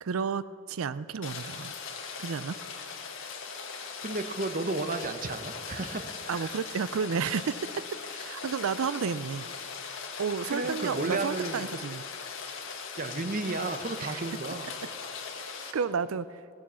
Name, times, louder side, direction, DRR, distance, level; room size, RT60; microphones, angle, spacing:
voice 1, 0.0-1.7 2.2-2.6 6.3-7.6 8.1-9.5 10.2-12.0 14.0-14.3 15.7-16.4, right 6 dB, 80° right, 15 dB, 0.5 m, -31 dB
Rain, 1.2-15.7, left 5 dB, 65° left, 1.6 m, -40 dB
voice 2, 4.0-6.5 10.5-11.7 13.0-14.7, right 3 dB, 45° right, 8 dB, 0.9 m, -33 dB
sound 1, 9.6-14.4, left 7 dB, 85° left, 0.8 m, -52 dB
16.5 x 11.0 x 6.3 m, 2.5 s
head